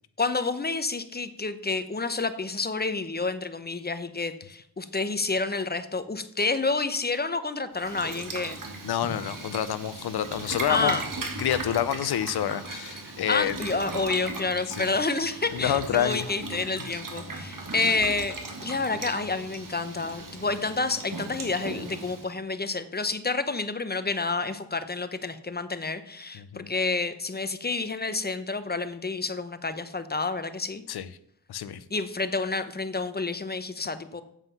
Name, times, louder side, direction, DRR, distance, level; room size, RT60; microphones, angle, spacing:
voice 1, 0.2-8.6 10.7-11.0 13.1-18.4 18.6-30.8 31.9-34.2, left 3 dB, 25° left, 11 dB, 0.8 m, -29 dB
Boiling, 7.7-22.3, right 3 dB, 60° right, 1.9 m, -37 dB
voice 2, 8.8-11.0 11.4-13.6 14.7-14.9 15.5-16.3 26.4-26.7 30.9-31.1 31.5-31.8, left 10 dB, 85° left, 14 dB, 0.6 m, -28 dB
7.9 x 7.4 x 5.5 m, 0.72 s
wide cardioid pair, 75°, 37 cm